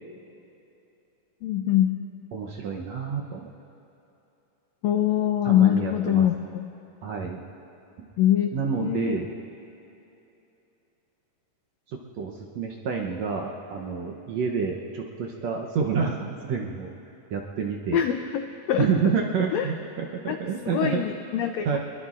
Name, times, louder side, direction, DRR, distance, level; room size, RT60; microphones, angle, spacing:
voice 1, 1.4-1.9 4.8-6.7 8.2-8.5 8.8-9.2 17.9-18.9 19.5-19.7 20.3-20.4 20.7-21.8, left 11 dB, 85° left, 6 dB, 1.5 m, -23 dB
voice 2, 2.3-3.5 5.5-6.3 7.0-7.4 8.0-8.1 8.5-9.4 12.2-16.9 17.3-18.0 18.8-21.0 21.7-21.8, right 6 dB, 70° right, 0 dB, 1.8 m, -28 dB
23.0 x 22.0 x 2.5 m, 2.9 s
omnidirectional pair, 3.8 m